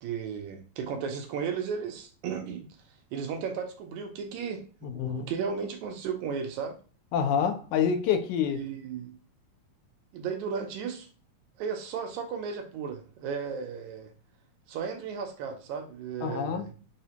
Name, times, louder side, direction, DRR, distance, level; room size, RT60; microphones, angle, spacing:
voice 1, 0.0-2.7 3.1-6.8 8.5-9.1 10.1-11.1 11.6-14.1 14.7-16.7, right 6 dB, 80° right, 1.9 m, -35 dB
voice 2, 4.8-5.3 7.1-8.6 16.2-16.6, left 7 dB, 90° left, 2.1 m, -27 dB
4.8 x 2.1 x 2.8 m
omnidirectional pair, 3.4 m